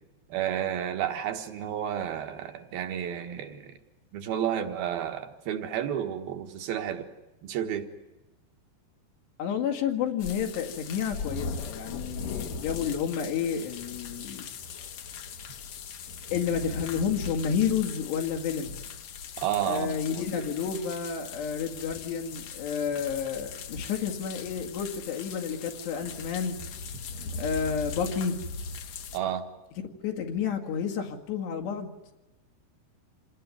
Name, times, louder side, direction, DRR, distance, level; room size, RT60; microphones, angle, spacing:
voice 1, 0.3-3.8 4.1-7.1 7.4-7.9 19.4-20.2 29.1-29.5, right 10 dB, 70° right, 6 dB, 3.3 m, -31 dB
voice 2, 9.4-14.5 16.3-18.8 19.6-26.6 27.4-28.4 30.0-31.9, left 7 dB, 80° left, 2 dB, 4.2 m, -30 dB
sound 1, 10.2-29.2, left 5 dB, 65° left, 1.7 m, -39 dB
27.5 x 18.5 x 9.6 m, 1.1 s
omnidirectional pair, 4.8 m